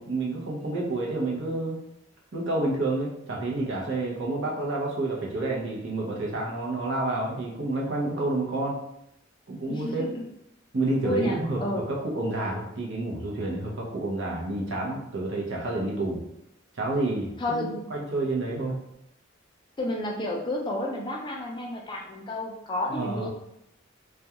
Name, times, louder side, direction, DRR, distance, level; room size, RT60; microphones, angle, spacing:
voice 1, 0.0-1.8 2.3-8.8 9.5-10.1 10.7-16.2 16.8-18.8 22.9-23.3, right 2 dB, 65° right, -2 dB, 0.7 m, -29 dB
voice 2, 9.7-10.2 11.0-11.9 17.4-17.9 19.8-23.3, left 1 dB, 25° left, 0 dB, 0.4 m, -31 dB
2.3 x 2.2 x 2.8 m, 0.79 s
head